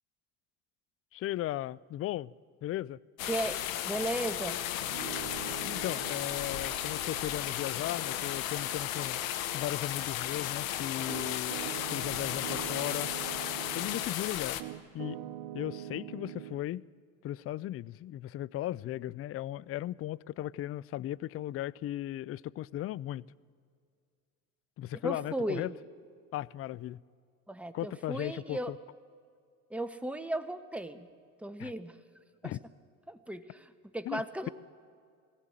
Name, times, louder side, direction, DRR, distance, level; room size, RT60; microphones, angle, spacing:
voice 1, 1.1-2.3 2.6-3.0 5.6-9.3 9.5-11.6 11.9-13.1 13.7-14.6 14.9-15.2 15.5-16.8 17.2-23.2 24.8-25.7 26.3-27.0 27.7-28.8 31.6-31.7 32.4-32.6 34.1-34.5, left 14 dB, 35° left, 0.4 m, -36 dB
sound 1, 3.2-14.6, left 12 dB, 85° left, 1.2 m, -35 dB
voice 2, 3.3-3.6 3.8-4.6 25.0-25.7 27.5-28.7 29.7-31.1 31.4-32.0 32.4-32.5 33.1-34.5, right 1 dB, 5° right, 1.5 m, -36 dB
Piano, 4.8-14.2 14.6-16.6, right 13 dB, 65° right, 1.1 m, -45 dB
20.0 x 17.0 x 9.1 m
supercardioid pair, 80°, 39 cm